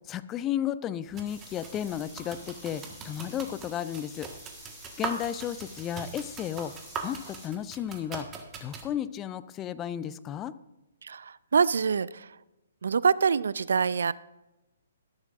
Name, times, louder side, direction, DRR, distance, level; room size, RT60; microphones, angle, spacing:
voice 1, 0.1-4.3 5.0-6.7 7.0-8.3 8.6-10.5, left 10 dB, 20° left, 15 dB, 0.5 m, -33 dB
sound 1, 1.1-8.9, right 5 dB, 20° right, 1.5 m, -41 dB
sound 2, 1.2-7.5, equal, ahead, 4.2 m, -49 dB
voice 2, 11.0-12.4 12.8-14.1, right 6 dB, 70° right, 20 dB, 0.4 m, -25 dB
13.5 x 12.0 x 2.5 m, 1.0 s
figure-of-eight pair, 130°, 0 cm